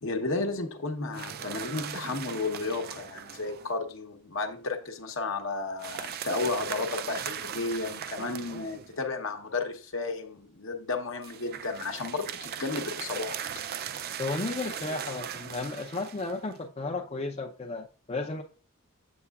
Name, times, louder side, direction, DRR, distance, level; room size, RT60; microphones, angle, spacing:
voice 1, 0.0-13.4, left 3 dB, 60° left, 0.9 m, -33 dB
sound 1, 1.1-3.7 5.8-9.0 11.2-16.6, right 8 dB, 45° right, 0.3 m, -39 dB
voice 2, 14.2-18.4, left 3 dB, 30° left, 0.5 m, -34 dB
7.3 x 7.1 x 2.3 m
head